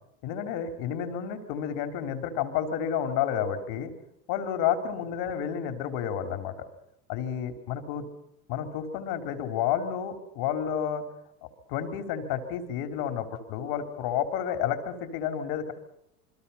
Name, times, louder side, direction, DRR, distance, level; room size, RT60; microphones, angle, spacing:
voice 1, 0.2-3.9 4.3-6.5 7.1-8.1 8.5-11.0 11.4-15.7, left 9 dB, 65° left, 8 dB, 3.6 m, -30 dB
28.0 x 22.0 x 5.7 m, 0.79 s
hypercardioid pair, 85°, 44 cm